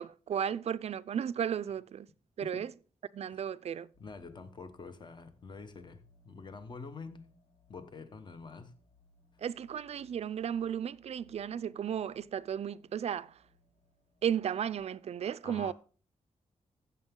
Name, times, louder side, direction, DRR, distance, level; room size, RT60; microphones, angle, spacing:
voice 1, 0.0-2.1 2.4-2.7 3.1-3.9 9.4-13.3 14.2-15.7, right 9 dB, 55° right, 0.4 m, -34 dB
sound 1, 3.9-14.8, left 4 dB, 85° left, 3.0 m, -66 dB
voice 2, 4.0-7.3 7.7-8.8 15.4-15.7, left 4 dB, 35° left, 1.1 m, -47 dB
15.0 x 6.9 x 3.7 m
wide cardioid pair, 175°, 13 cm